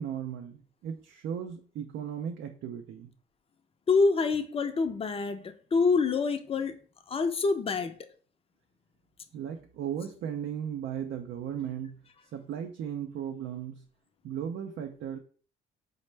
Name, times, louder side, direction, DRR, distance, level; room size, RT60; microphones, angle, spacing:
voice 1, 0.0-3.1 9.3-12.0 12.3-13.8 14.2-15.2, right 8 dB, 70° right, 0.4 m, -36 dB
voice 2, 3.9-6.8 7.1-8.0, left 4 dB, 30° left, 0.4 m, -26 dB
4.2 x 2.1 x 3.2 m
cardioid pair, 90°, 20 cm